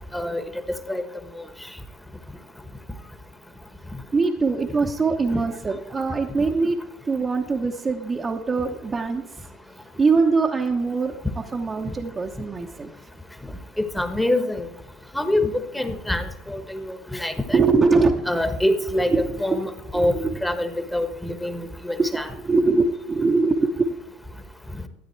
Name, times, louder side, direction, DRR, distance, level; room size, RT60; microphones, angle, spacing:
voice 1, 0.1-0.4 0.9-1.0 5.3-5.4 13.8-14.7 15.1-17.6 18.3-19.1 19.4-20.1 20.4-22.3, left 1 dB, 5° left, 8 dB, 1.3 m, -25 dB
voice 2, 4.1-6.8 7.0-9.5 10.0-13.1 17.5-18.3 19.1-19.6 19.9-20.3 22.0-24.0, right 4 dB, 25° right, 0 dB, 1.0 m, -23 dB
13.0 x 8.9 x 4.5 m, 0.95 s
hypercardioid pair, 75°, 0 cm